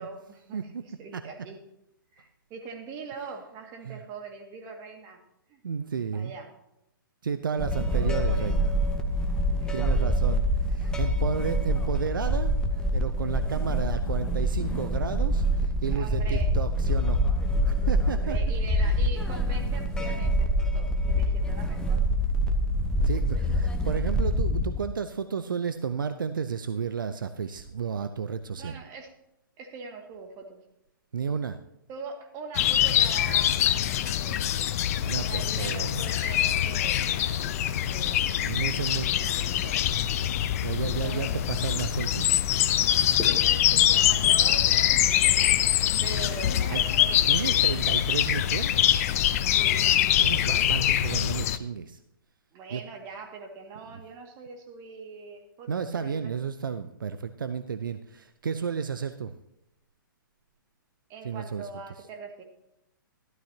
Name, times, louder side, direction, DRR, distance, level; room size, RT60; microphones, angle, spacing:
voice 1, 0.0-1.6 2.1-5.2 5.5-5.6 6.1-6.5 7.9-8.5 9.6-9.9 15.9-16.5 18.1-22.0 23.0-23.6 28.6-29.1 29.6-30.6 31.9-34.4 35.3-38.4 38.9-39.8 40.9-41.4 43.3-45.7 46.0-47.6 49.6-49.9 52.5-56.3 61.1-62.4, right 4 dB, 30° right, 3 dB, 2.1 m, -42 dB
voice 2, 0.5-0.8 1.1-1.2 3.8-4.0 5.6-6.3 7.2-8.7 9.5-12.5 12.9-17.2 17.6-18.4 23.0-28.8 31.1-31.6 35.0-36.1 38.4-39.1 40.6-42.4 46.7-46.8 47.3-48.8 50.2-52.0 52.7-52.8 55.7-59.3 61.2-61.7, right 6 dB, 70° right, 10 dB, 0.7 m, -32 dB
sound 1, 7.6-24.9, equal, 5° left, 1.0 m, -26 dB
sound 2, 32.6-51.6, left 11 dB, 40° left, 0.6 m, -24 dB
sound 3, 35.9-46.8, equal, 10° right, 2.6 m, -46 dB
14.0 x 12.5 x 2.9 m, 0.85 s
figure-of-eight pair, 120°, 12 cm